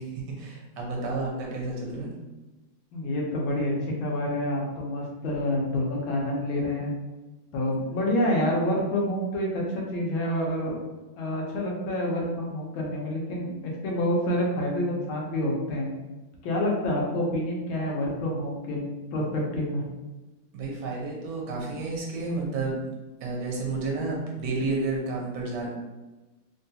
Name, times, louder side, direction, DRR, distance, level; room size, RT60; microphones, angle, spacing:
voice 1, 0.0-2.1 20.5-22.9 23.2-25.7, right 3 dB, 65° right, -2 dB, 1.3 m, -31 dB
voice 2, 2.9-6.9 7.5-10.8 11.2-15.9 16.4-18.8 19.1-19.8, left 1 dB, 90° left, -2 dB, 1.6 m, -28 dB
3.6 x 2.3 x 2.7 m, 1.1 s
omnidirectional pair, 2.1 m